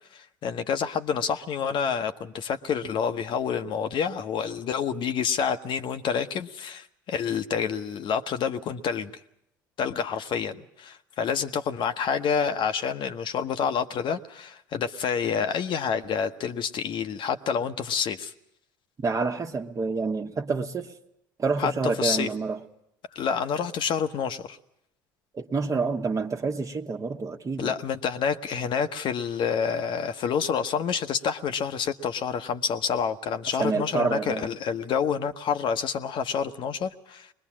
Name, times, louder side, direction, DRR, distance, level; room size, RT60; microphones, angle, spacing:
voice 1, 0.1-9.1 9.8-18.3 21.6-21.7 22.0-22.3 23.1-24.6 27.6-37.3, left 7 dB, 50° left, 8 dB, 1.0 m, -28 dB
voice 2, 19.0-20.9 21.4-22.6 25.3-27.7 33.6-34.5, right 4 dB, 30° right, 5 dB, 1.5 m, -28 dB
22.5 x 21.0 x 7.4 m, 0.80 s
hypercardioid pair, 65°, 11 cm